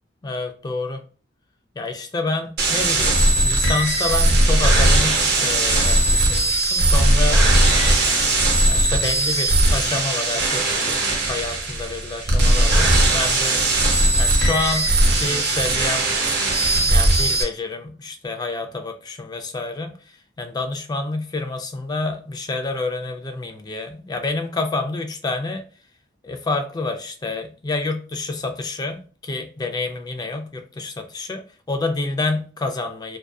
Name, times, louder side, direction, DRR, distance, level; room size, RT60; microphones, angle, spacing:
voice 1, 0.2-1.0 1.8-7.4 8.7-11.0 11.3-13.6 14.2-16.1 16.7-25.6 26.2-33.2, left 3 dB, 20° left, 5 dB, 0.3 m, -28 dB
sound 1, 2.6-17.4, right 1 dB, 55° right, 0.7 m, -18 dB
2.5 x 2.3 x 2.2 m, 0.38 s
head